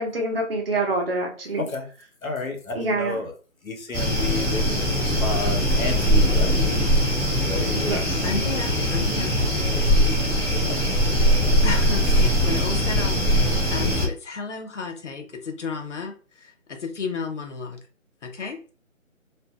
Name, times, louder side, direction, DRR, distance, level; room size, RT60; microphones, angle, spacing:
voice 1, 0.0-1.6 2.7-3.2 7.8-8.0, right 2 dB, 45° right, 1 dB, 0.8 m, -26 dB
voice 2, 2.2-3.3 3.6-7.1 7.4-8.4 9.7-10.2 10.6-10.9, left 3 dB, 85° left, 3 dB, 1.0 m, -32 dB
sound 1, 3.9-14.1, equal, 20° left, 0.6 m, -21 dB
voice 3, 7.9-9.4 11.6-17.8 18.2-18.6, left 4 dB, 60° left, 4 dB, 0.8 m, -33 dB
2.6 x 2.6 x 2.3 m, 0.38 s
figure-of-eight pair, 165°, 40 cm